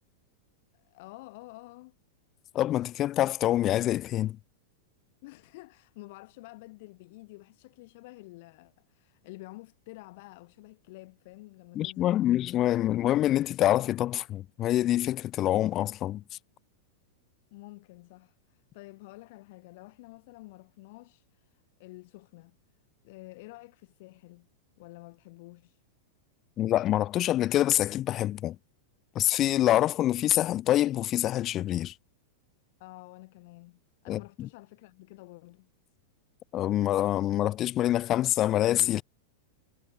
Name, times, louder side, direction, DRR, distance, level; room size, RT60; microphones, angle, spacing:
voice 1, 0.7-2.0 5.2-12.4 17.5-22.6 23.0-24.5 24.8-25.8 32.8-35.7, left 22 dB, 55° left, 6.7 m, -49 dB
voice 2, 2.5-4.4 11.8-16.2 26.6-28.6 29.2-31.9 34.1-34.5 36.5-39.0, left 13 dB, 35° left, 0.5 m, -26 dB
figure-of-eight pair, 95°, 0 cm